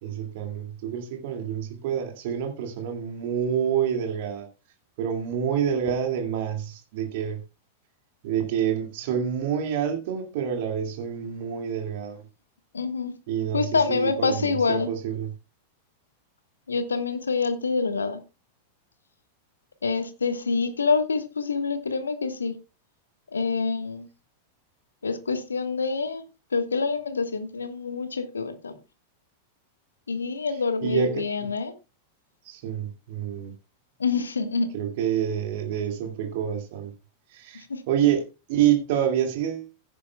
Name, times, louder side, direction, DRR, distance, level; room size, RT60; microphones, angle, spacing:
voice 1, 0.0-4.5 5.0-7.4 8.2-12.2 13.3-15.3 30.8-31.2 32.4-33.5 34.7-36.9 37.3-39.7, right 9 dB, 50° right, 2.2 m, -27 dB
voice 2, 12.7-13.1 13.5-14.9 16.7-18.2 19.8-22.5 23.3-24.1 25.0-26.2 26.5-28.7 30.1-31.7 34.0-34.7 37.5-37.8, left 4 dB, 75° left, 1.4 m, -26 dB
16.5 x 9.9 x 2.3 m
figure-of-eight pair, 90°, 0 cm